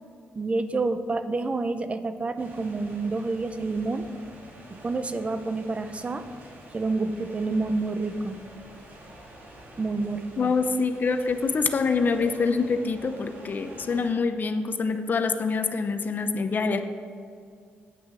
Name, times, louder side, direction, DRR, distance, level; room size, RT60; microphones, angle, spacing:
voice 1, 0.4-4.1 4.7-6.3 6.7-8.4 9.8-10.5, right 3 dB, 30° right, 10 dB, 0.7 m, -28 dB
sound 1, 2.4-14.1, right 1 dB, 50° right, 2.4 m, -47 dB
voice 2, 10.4-16.8, left 4 dB, 45° left, 8 dB, 0.7 m, -25 dB
9.4 x 6.1 x 7.5 m, 2.3 s
cardioid pair, 85°, 4 cm